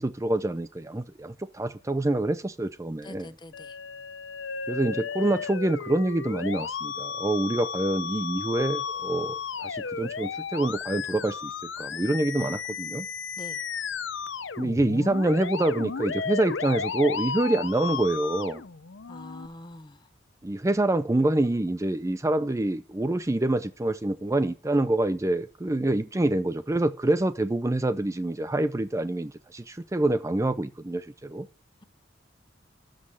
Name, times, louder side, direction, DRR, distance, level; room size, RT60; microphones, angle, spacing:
voice 1, 0.0-3.3 4.7-13.1 14.6-18.6 20.4-31.5, right 1 dB, 15° right, 0.4 m, -26 dB
voice 2, 3.0-3.8 13.4-13.6 19.1-20.1, left 1 dB, 25° left, 0.7 m, -44 dB
Musical instrument, 3.5-19.5, left 6 dB, 75° left, 0.7 m, -34 dB
13.0 x 6.4 x 6.3 m
head